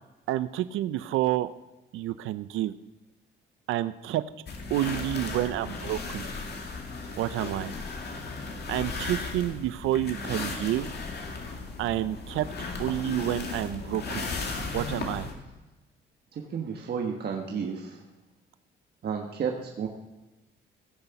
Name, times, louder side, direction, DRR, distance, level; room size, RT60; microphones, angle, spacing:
voice 1, 0.3-1.5 1.9-2.7 3.7-4.2 4.7-6.2 7.2-7.7 8.7-10.9 11.8-12.5 12.8-14.3 14.7-15.3, right 13 dB, 85° right, 14 dB, 0.5 m, -29 dB
sound 1, 4.5-15.3, left 3 dB, 55° left, 2.3 m, -36 dB
voice 2, 16.3-18.0 19.0-19.9, right 6 dB, 55° right, 1 dB, 1.4 m, -32 dB
16.0 x 6.8 x 5.9 m, 1.1 s
cardioid pair, 90°, 20 cm